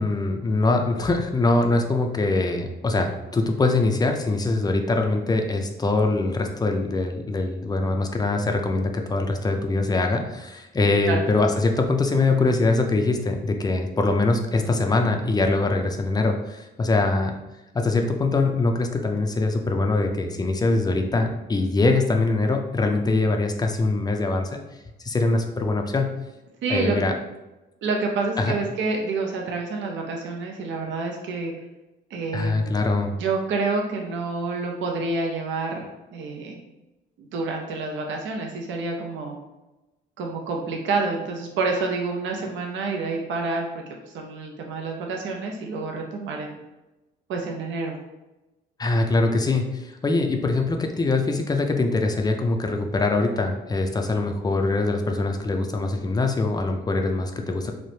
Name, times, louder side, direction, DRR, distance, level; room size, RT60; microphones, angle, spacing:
voice 1, 0.0-17.3 17.7-24.5 25.0-26.1 26.7-27.1 28.4-28.5 32.3-33.1 48.8-57.7, left 2 dB, 20° left, 4 dB, 0.3 m, -23 dB
voice 2, 26.6-27.0 27.8-31.5 32.1-32.8 33.2-35.8 36.1-36.6 37.2-39.3 40.2-46.6 47.3-48.0, right 3 dB, 70° right, 1 dB, 0.5 m, -28 dB
3.1 x 2.0 x 2.7 m, 1.0 s
cardioid pair, 90°, 20 cm